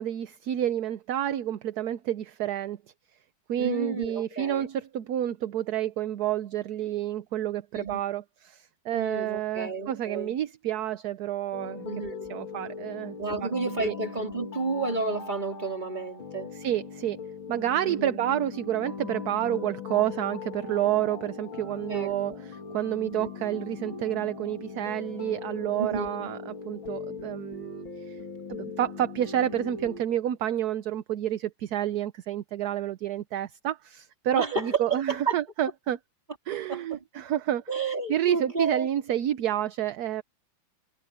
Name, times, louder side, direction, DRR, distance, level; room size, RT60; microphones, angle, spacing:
voice 1, 0.0-2.8 3.5-11.9 12.3-13.5 13.8-13.9 16.5-17.2 17.5-28.2 28.5-36.0 36.5-37.6 38.1-40.2, right 11 dB, 65° right, 1.1 m, -29 dB
voice 2, 3.6-4.7 7.7-8.0 8.9-10.3 11.8-12.3 13.2-16.5 17.9-18.2 21.9-22.4 23.0-23.3 25.8-26.3 34.3-35.4 36.5-37.0 37.7-38.9, right 4 dB, 20° right, 3.9 m, -31 dB
sound 1, 11.5-30.0, left 5 dB, 80° left, 3.5 m, -40 dB
omnidirectional pair, 2.1 m